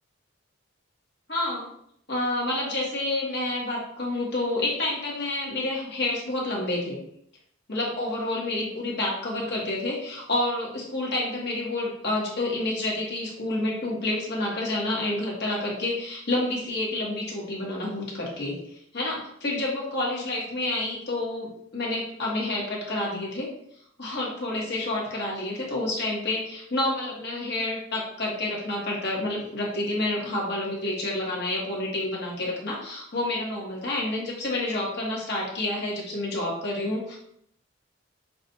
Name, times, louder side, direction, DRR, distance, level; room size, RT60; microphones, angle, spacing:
voice 1, 1.3-1.7 2.1-7.0 7.7-18.6 18.9-23.5 24.0-37.2, left 2 dB, 55° left, -4 dB, 1.3 m, -29 dB
6.0 x 2.4 x 2.7 m, 0.70 s
head